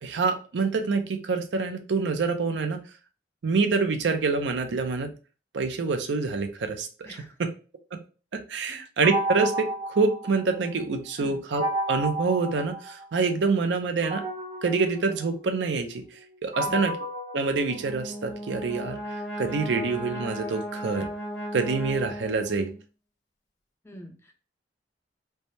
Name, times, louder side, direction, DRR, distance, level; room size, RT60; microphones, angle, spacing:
voice 1, 0.0-2.8 3.4-5.1 5.5-6.9 8.3-14.2 14.6-16.0 16.4-16.9 17.3-19.0 19.4-21.1 21.5-22.7, right 4 dB, 85° right, 6 dB, 0.5 m, -26 dB
voice 2, 7.0-7.4 8.7-8.8 11.2-11.4 16.6-16.9 23.8-24.3, equal, 15° left, 2 dB, 0.5 m, -44 dB
sound 1, 9.0-10.8 11.5-13.3 14.0-18.3, right 1 dB, 35° right, 0.5 m, -33 dB
Brass instrument, 17.7-22.7, equal, 65° left, 0.9 m, -36 dB
3.3 x 2.1 x 2.6 m, 0.34 s
head